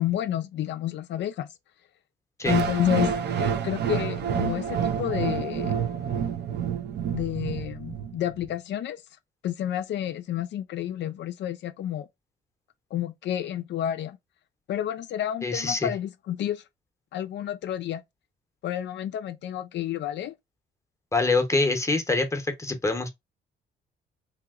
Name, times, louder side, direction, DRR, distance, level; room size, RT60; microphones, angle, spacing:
voice 1, 0.0-1.5 2.5-3.1 3.4-5.7 7.1-9.0 9.4-12.1 12.9-14.2 14.7-16.6 17.1-18.0 18.6-20.4, left 11 dB, 65° left, 0.4 m, -30 dB
sound 1, 2.4-8.5, right 7 dB, 60° right, 0.5 m, -28 dB
voice 2, 15.4-15.9 21.1-23.1, left 3 dB, 15° left, 0.8 m, -25 dB
2.9 x 2.8 x 2.3 m
cardioid pair, 90°, 20 cm